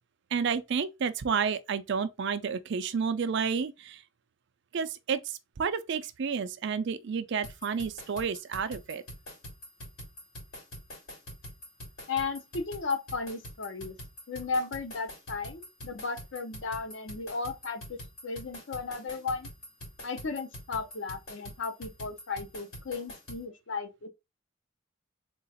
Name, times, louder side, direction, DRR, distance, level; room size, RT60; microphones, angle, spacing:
voice 1, 0.3-4.0 4.7-9.0, right 6 dB, 60° right, 0.4 m, -31 dB
sound 1, 7.4-23.4, equal, 90° left, 2.7 m, -45 dB
voice 2, 12.1-14.0 14.3-19.5 20.0-24.1, left 4 dB, 60° left, 0.7 m, -35 dB
3.8 x 2.4 x 4.0 m
head